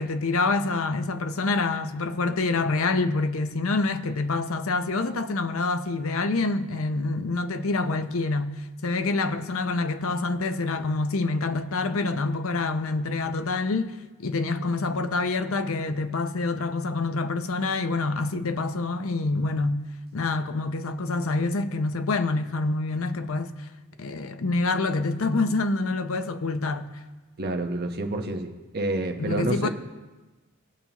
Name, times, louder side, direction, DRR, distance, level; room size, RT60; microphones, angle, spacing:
voice 1, 0.0-8.5 8.8-19.8 20.1-23.5 24.0-26.9 29.2-29.7, left 3 dB, 65° left, 0.7 m, -26 dB
voice 2, 27.4-29.7, right 2 dB, 45° right, 1.0 m, -28 dB
19.0 x 7.1 x 3.0 m
head